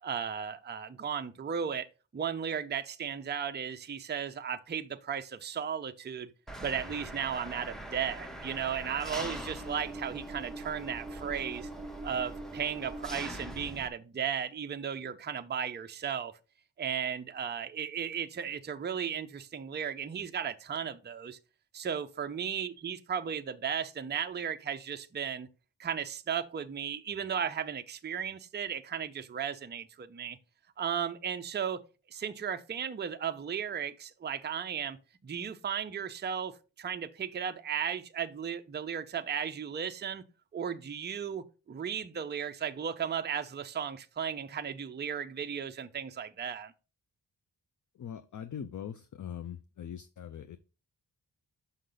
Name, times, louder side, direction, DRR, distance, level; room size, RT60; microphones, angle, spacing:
voice 1, 0.0-1.9 2.1-6.3 6.6-11.7 12.0-16.3 16.8-21.4 21.7-25.5 25.8-30.4 30.8-31.8 32.1-35.0 35.2-40.2 40.5-46.7, right 7 dB, 25° right, 0.5 m, -35 dB
Engine, 6.5-13.9, right 1 dB, ahead, 0.8 m, -41 dB
voice 2, 47.9-50.6, left 9 dB, 45° left, 0.5 m, -42 dB
6.5 x 5.6 x 3.8 m
wide cardioid pair, 130°, 45 cm